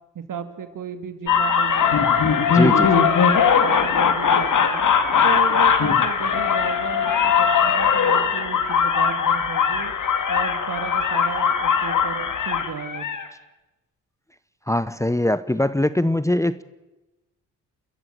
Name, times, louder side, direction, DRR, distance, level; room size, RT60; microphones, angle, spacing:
voice 1, 0.1-4.8 5.2-9.9 10.3-13.1, right 7 dB, 60° right, 9 dB, 2.5 m, -34 dB
sound 1, 1.3-13.2, left 6 dB, 60° left, 2.3 m, -20 dB
voice 2, 2.5-3.0 14.7-16.6, left 1 dB, 10° left, 14 dB, 0.9 m, -22 dB
30.0 x 14.0 x 7.7 m, 1.0 s
supercardioid pair, 50°, 36 cm